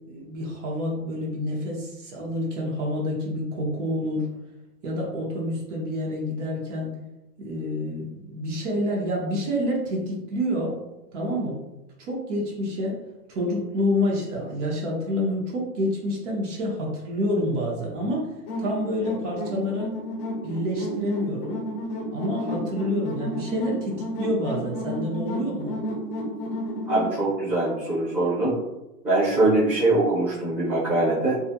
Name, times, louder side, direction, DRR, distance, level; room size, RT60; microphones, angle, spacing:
voice 1, 0.1-4.3 4.8-6.9 7.4-10.7 11.1-11.6 12.0-13.0 13.3-18.2 18.6-19.9 20.4-21.6 22.1-25.8, left 1 dB, 50° right, -3 dB, 0.7 m, -28 dB
sound 1, 18.5-27.1, equal, 40° left, 0.6 m, -31 dB
voice 2, 26.8-28.6 29.0-31.3, right 2 dB, 5° right, -13 dB, 0.7 m, -22 dB
2.4 x 2.0 x 2.7 m, 0.97 s
hypercardioid pair, 145°, 48 cm